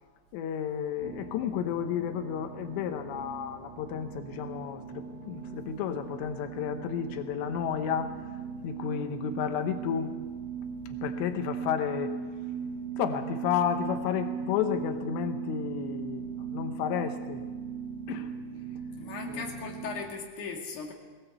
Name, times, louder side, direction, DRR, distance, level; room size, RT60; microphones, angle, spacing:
voice 1, 0.3-8.1 8.6-10.1 10.9-12.2 13.0-17.4 18.1-18.3 19.3-19.9, left 8 dB, 90° left, 7 dB, 3.3 m, -32 dB
sound 1, 1.0-20.0, right 6 dB, 80° right, 3.4 m, -39 dB
voice 2, 19.0-20.9, left 5 dB, 50° left, 0 dB, 3.7 m, -38 dB
19.5 x 19.0 x 8.1 m, 1.4 s
omnidirectional pair, 4.9 m